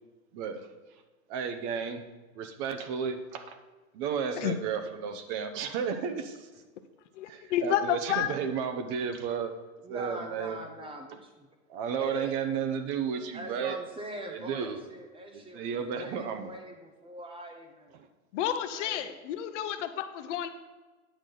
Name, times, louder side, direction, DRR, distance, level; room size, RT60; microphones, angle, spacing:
voice 1, 0.3-0.7 1.3-2.0 2.3-3.6 3.9-6.5 7.3-9.5 9.9-10.6 11.7-13.8 14.3-14.8 15.3-16.5 18.0-18.1, right 6 dB, 40° right, 8 dB, 0.9 m, -33 dB
voice 2, 7.1-8.3 18.3-20.5, left 10 dB, 55° left, 9 dB, 0.8 m, -30 dB
voice 3, 9.8-11.5 12.0-12.4 13.3-17.9 18.7-19.2, right 1 dB, 15° right, 4 dB, 0.6 m, -42 dB
8.8 x 6.1 x 3.9 m, 1.3 s
hypercardioid pair, 125°, 43 cm